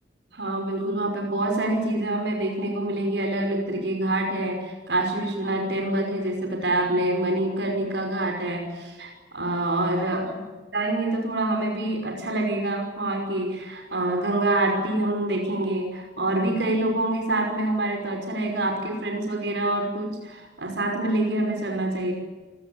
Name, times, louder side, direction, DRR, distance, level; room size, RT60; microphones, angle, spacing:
voice 1, 0.3-10.3 10.7-22.1, right 1 dB, 90° right, 3 dB, 5.5 m, -26 dB
28.5 x 19.5 x 8.7 m, 1.3 s
head